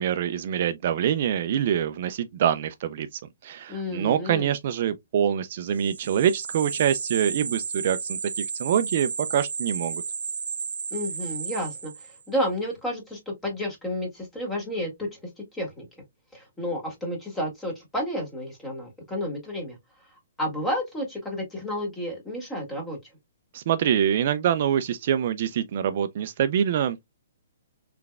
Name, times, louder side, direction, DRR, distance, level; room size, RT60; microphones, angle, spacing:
voice 1, 0.0-3.1 3.4-10.0 23.5-27.0, right 9 dB, 50° right, 0.4 m, -25 dB
voice 2, 3.7-4.5 10.9-15.9 16.3-19.8 20.4-23.0, equal, 10° left, 1.8 m, -31 dB
sound 1, 5.8-12.3, right 5 dB, 90° right, 0.7 m, -33 dB
3.8 x 3.3 x 2.3 m
hypercardioid pair, 150°, 0 cm